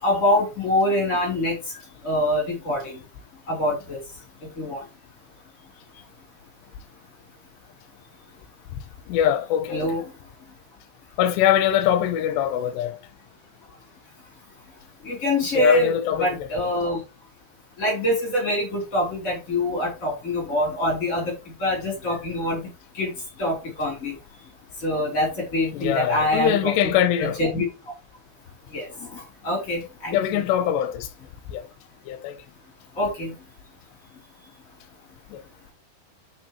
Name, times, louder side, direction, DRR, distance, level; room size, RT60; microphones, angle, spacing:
voice 1, 0.0-1.6 2.0-3.0 3.5-4.0 4.4-4.8 9.7-10.0 15.0-17.0 17.8-22.7 22.9-23.1 23.4-24.1 24.8-26.9 27.2-27.6 28.7-30.4 32.9-33.3, left 1 dB, 20° left, 2.9 m, -25 dB
voice 2, 9.1-9.9 11.2-13.0 15.6-16.5 25.7-27.4 30.1-31.1 31.5-31.6 32.1-32.4 35.3-35.4, left 10 dB, 85° left, 2.8 m, -22 dB
10.5 x 6.3 x 2.9 m
omnidirectional pair, 5.1 m